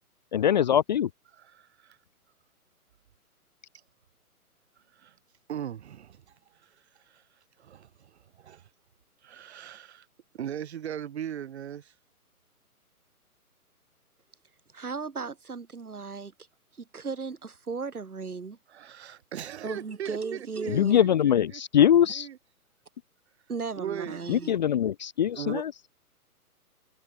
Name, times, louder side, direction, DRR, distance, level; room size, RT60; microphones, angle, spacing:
voice 1, 0.3-1.1 20.7-22.3 24.3-25.7, left 10 dB, 30° left, 0.8 m, -22 dB
voice 2, 1.5-2.0 5.0-5.1 5.5-6.1 7.1-7.2 7.6-8.6 9.2-10.1 10.3-11.9 18.7-21.1 21.5-21.6 22.2-22.4 23.8-24.2 25.3-25.6, right 10 dB, 45° right, 2.7 m, -38 dB
voice 3, 14.7-16.3 16.8-18.6 19.6-21.0 23.5-24.5, right 5 dB, 70° right, 4.1 m, -36 dB
figure-of-eight pair, 135°, 46 cm